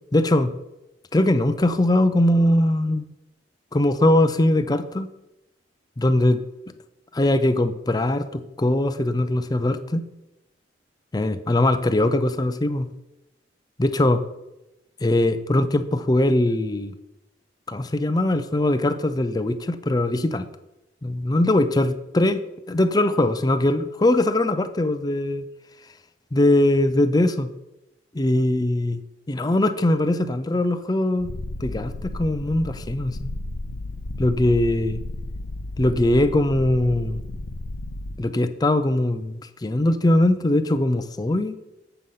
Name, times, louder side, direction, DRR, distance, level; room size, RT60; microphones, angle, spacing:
voice 1, 0.1-0.5 1.1-3.0 3.7-5.1 6.0-6.4 7.1-10.0 11.1-12.9 13.8-14.2 15.0-16.9 17.7-20.5 21.0-22.4 22.7-25.4 26.3-27.5 28.1-29.0 29.3-31.3 31.6-33.2 34.2-35.0 35.8-37.2 38.2-41.5, left 1 dB, 20° left, 10 dB, 0.5 m, -21 dB
Purr, 31.2-38.2, left 2 dB, 85° left, 0.7 m, -33 dB
7.7 x 6.9 x 5.6 m, 0.93 s
head